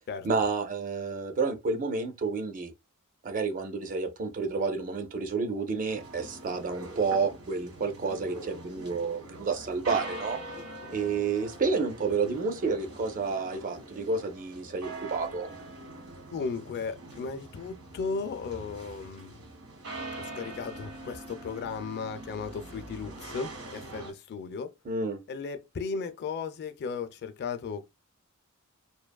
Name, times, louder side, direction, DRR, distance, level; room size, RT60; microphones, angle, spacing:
voice 1, 0.2-2.7 3.2-10.4 10.9-15.5 24.9-25.2, right 4 dB, 40° right, 0.4 m, -30 dB
sound 1, 5.9-24.1, right 2 dB, 85° right, 1.0 m, -43 dB
voice 2, 16.3-19.4 20.2-24.7 25.3-27.9, left 5 dB, 50° left, 0.3 m, -36 dB
2.6 x 2.3 x 2.2 m
head